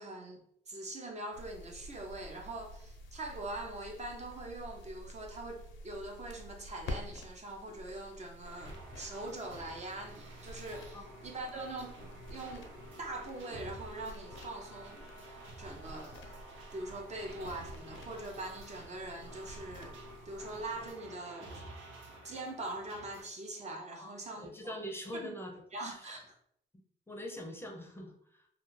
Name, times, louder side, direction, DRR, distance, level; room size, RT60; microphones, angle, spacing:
voice 1, 0.0-12.0 12.3-12.7 13.0-16.4 16.7-20.0 20.3-21.6 22.2-24.8 25.2-25.4 25.7-26.3, right 2 dB, 35° right, 1 dB, 0.5 m, -43 dB
sound 1, 1.3-20.9, left 1 dB, 75° left, 0.5 m, -50 dB
sound 2, 8.4-23.2, right 1 dB, 85° right, 0.7 m, -50 dB
voice 2, 23.9-25.5 25.8-26.1 26.7-28.5, equal, 10° left, 1 dB, 0.5 m, -44 dB
2.3 x 2.3 x 3.1 m, 0.69 s
cardioid pair, 90°, 20 cm